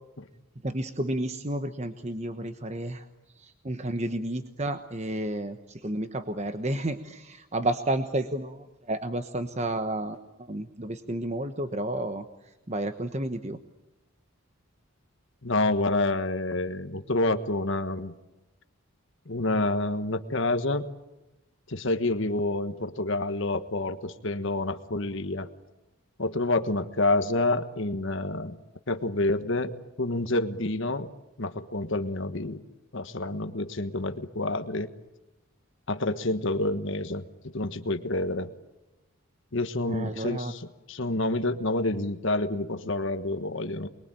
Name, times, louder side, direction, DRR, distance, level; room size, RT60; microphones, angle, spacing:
voice 1, 0.6-3.1 3.3-13.6 39.8-40.5, right 1 dB, 30° right, 8 dB, 1.1 m, -31 dB
voice 2, 15.4-18.1 19.3-20.9 21.7-25.5 26.2-28.6 28.9-29.7 30.0-31.1 31.4-32.6 32.9-34.9 35.9-37.2 37.5-38.5 39.5-40.6 40.9-43.9, left 2 dB, 60° left, 9 dB, 1.4 m, -28 dB
28.5 x 22.0 x 9.1 m, 1.0 s
head